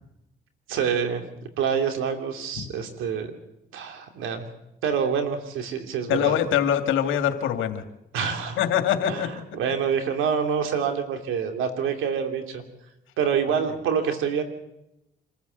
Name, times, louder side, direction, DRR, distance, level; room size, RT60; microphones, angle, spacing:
voice 1, 0.7-1.2 1.6-3.3 3.7-4.4 4.8-6.4 8.1-8.6 9.1-12.6 13.2-14.4, right 7 dB, 90° right, 6 dB, 3.1 m, -26 dB
voice 2, 6.1-7.8 8.6-9.3, left 10 dB, 90° left, 7 dB, 2.2 m, -23 dB
26.5 x 14.5 x 8.1 m, 0.86 s
cardioid pair, 90°, 20 cm